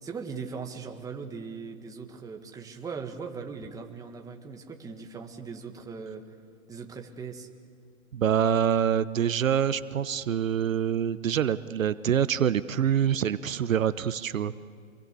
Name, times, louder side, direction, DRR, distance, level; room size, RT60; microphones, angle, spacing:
voice 1, 0.0-6.2 6.7-7.5, right 5 dB, 10° right, 3 dB, 1.7 m, -39 dB
voice 2, 8.1-14.5, right 9 dB, 70° right, 14 dB, 1.0 m, -25 dB
26.5 x 22.0 x 8.4 m, 2.1 s
hypercardioid pair, 140°, 41 cm